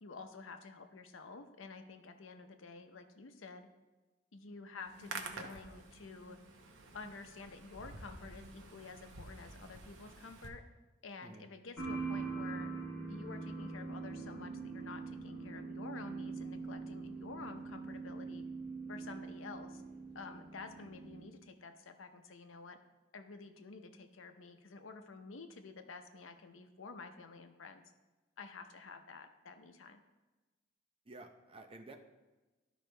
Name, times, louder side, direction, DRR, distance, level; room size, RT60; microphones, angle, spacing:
voice 1, 0.0-3.7 4.3-6.4 6.9-10.6 11.0-12.7 13.1-18.4 18.9-19.8 20.1-22.8 23.1-27.9 28.4-30.0, left 4 dB, 90° left, 7 dB, 0.7 m, -50 dB
Hands, 4.8-10.5, right 3 dB, 75° right, 0.9 m, -49 dB
sound 1, 11.8-21.3, right 4 dB, 5° left, 2.6 m, -43 dB
voice 2, 31.1-32.0, right 2 dB, 30° right, 5 dB, 0.6 m, -52 dB
12.0 x 5.1 x 3.3 m, 1.2 s
head